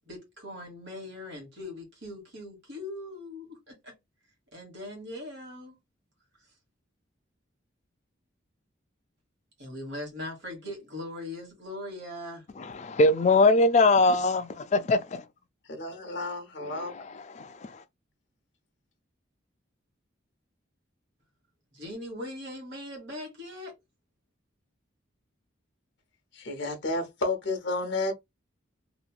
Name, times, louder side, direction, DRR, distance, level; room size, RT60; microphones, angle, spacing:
voice 1, 0.1-3.9 4.5-5.7 9.6-12.4 21.7-23.7, left 1 dB, 65° right, 1.3 m, -40 dB
voice 2, 12.8-15.2 17.4-17.5, left 2 dB, 35° left, 0.3 m, -21 dB
voice 3, 15.7-17.0 26.3-28.1, left 2 dB, 65° left, 0.8 m, -31 dB
3.0 x 2.5 x 2.2 m
head